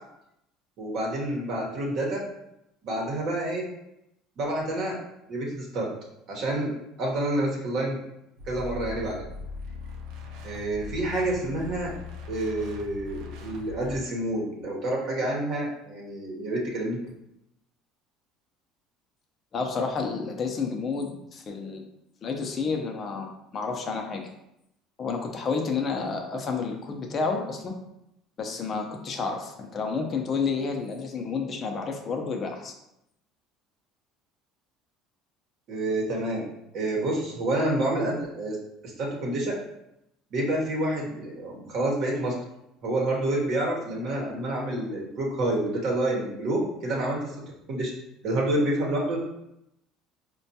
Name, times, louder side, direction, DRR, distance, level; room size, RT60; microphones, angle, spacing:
voice 1, 0.8-2.2 2.8-3.7 4.4-5.0 5.3-5.9 6.3-6.7 7.0-8.0 8.5-9.2 10.4-11.9 12.3-17.0 35.7-36.4 36.7-38.6 38.8-39.5 40.3-42.3 42.8-47.2 47.7-47.9 48.2-49.2, right 1 dB, 60° right, -2 dB, 0.9 m, -28 dB
sound 1, 8.4-14.0, left 4 dB, 80° right, 0.5 m, -40 dB
voice 2, 19.5-21.8 22.2-24.2 25.0-27.8 28.4-32.7, left 4 dB, 35° left, 2 dB, 0.5 m, -30 dB
4.3 x 2.2 x 2.7 m, 0.82 s
supercardioid pair, 105°, 0 cm